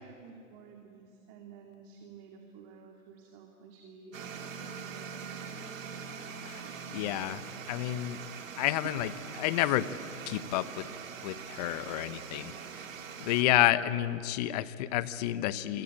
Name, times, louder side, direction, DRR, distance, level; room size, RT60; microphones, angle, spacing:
voice 1, 0.0-4.5 4.9-5.1 5.4-6.1, right 5 dB, 30° right, 2 dB, 2.5 m, -52 dB
sound 1, 4.1-13.4, right 6 dB, 65° right, 2.5 m, -43 dB
voice 2, 6.9-7.4 7.7-8.2 8.6-9.1 9.4-9.9 10.3-10.8 11.2-12.5 13.2-15.8, left 14 dB, 30° left, 15 dB, 0.9 m, -29 dB
26.5 x 24.5 x 8.8 m, 2.7 s
hypercardioid pair, 135°, 42 cm